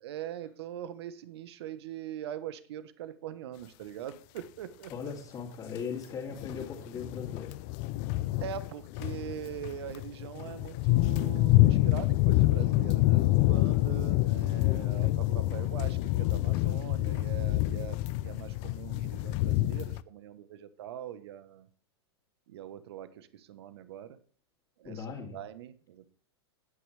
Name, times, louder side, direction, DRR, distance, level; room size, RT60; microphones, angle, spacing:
voice 1, 0.0-5.1 8.4-21.7 22.5-24.2 24.8-26.1, right 10 dB, 70° right, 13 dB, 1.1 m, -42 dB
voice 2, 4.9-7.5 24.8-25.4, left 6 dB, 30° left, -5 dB, 2.9 m, -38 dB
sound 1, 5.8-5.9 6.3-20.0, left 18 dB, 45° left, 0.5 m, -27 dB
17.5 x 6.3 x 3.4 m, 0.43 s
hypercardioid pair, 120°, 14 cm